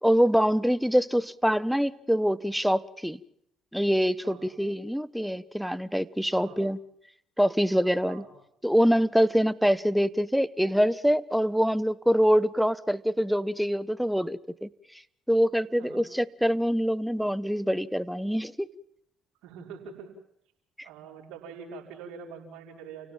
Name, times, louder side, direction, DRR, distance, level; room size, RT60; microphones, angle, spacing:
voice 1, 0.0-3.2 3.7-6.8 7.4-8.2 8.6-14.7 15.3-18.7, equal, ahead, 1.0 m, -25 dB
voice 2, 6.3-6.6 8.0-8.3 15.8-16.0 19.4-20.1 20.8-23.1, right 6 dB, 75° right, 5.4 m, -44 dB
29.0 x 17.0 x 7.6 m
hypercardioid pair, 60°, 0 cm